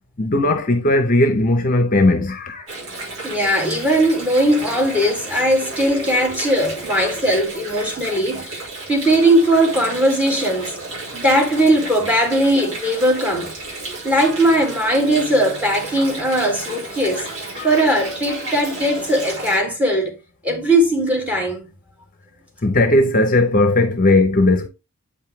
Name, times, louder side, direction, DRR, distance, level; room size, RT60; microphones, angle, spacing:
voice 1, 0.2-2.7 17.6-17.7 22.6-24.7, left 2 dB, 40° left, 0.9 m, -17 dB
Water, 2.7-19.6, right 2 dB, 65° right, 5.7 m, -32 dB
voice 2, 3.2-10.8 11.1-13.5 14.0-17.3 17.6-20.2 20.4-21.7, right 1 dB, 5° right, 2.3 m, -19 dB
8.4 x 5.5 x 3.2 m
head